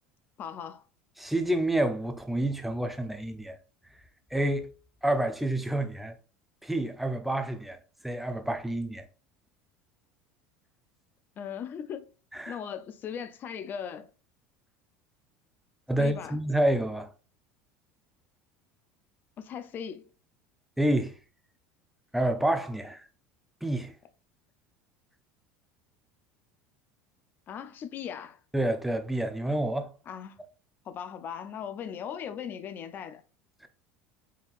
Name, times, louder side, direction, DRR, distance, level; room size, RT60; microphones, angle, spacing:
voice 1, 0.4-0.8 11.4-12.1 12.5-14.1 16.0-16.4 19.4-20.1 27.5-28.4 30.1-30.4 30.8-33.2, left 8 dB, 40° left, 0.5 m, -38 dB
voice 2, 1.2-3.6 4.3-4.7 5.0-6.1 6.6-7.8 8.0-9.0 12.4-12.6 15.9-17.1 20.8-21.1 22.1-23.0 23.6-23.9 28.5-29.9, right 1 dB, 5° right, 0.6 m, -28 dB
4.4 x 3.5 x 2.4 m
supercardioid pair, 110°, 5 cm